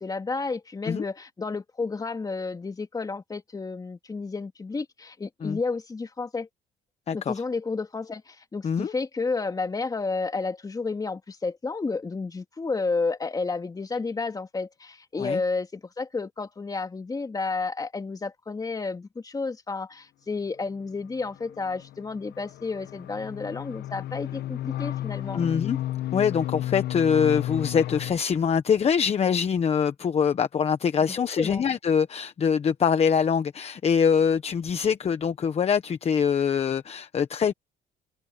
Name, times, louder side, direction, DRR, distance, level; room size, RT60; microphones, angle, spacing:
voice 1, 0.0-6.5 7.1-25.4 31.0-31.6, left 4 dB, 20° left, 2.6 m, -31 dB
sound 1, 21.1-28.1, left 14 dB, 70° left, 1.3 m, -33 dB
voice 2, 25.3-25.8 26.1-37.5, left 7 dB, 40° left, 1.2 m, -24 dB
open air
cardioid pair, 110°, 17 cm